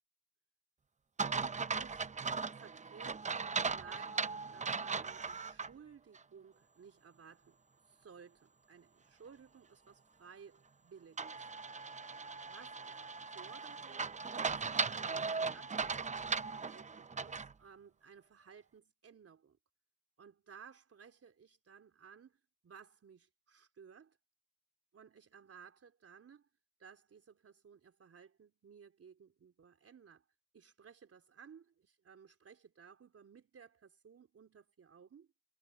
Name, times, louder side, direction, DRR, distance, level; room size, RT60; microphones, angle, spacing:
sound 1, 1.2-5.7 6.1-6.2 11.2-17.5, right 4 dB, 15° right, 0.8 m, -38 dB
voice 1, 1.8-2.1 2.5-7.6 7.9-11.4 12.4-13.0 13.3-19.6 20.2-24.2 24.9-26.5 26.8-30.2 30.5-35.3, right 6 dB, 30° right, 3.9 m, -58 dB
supercardioid pair, 95°, 46 cm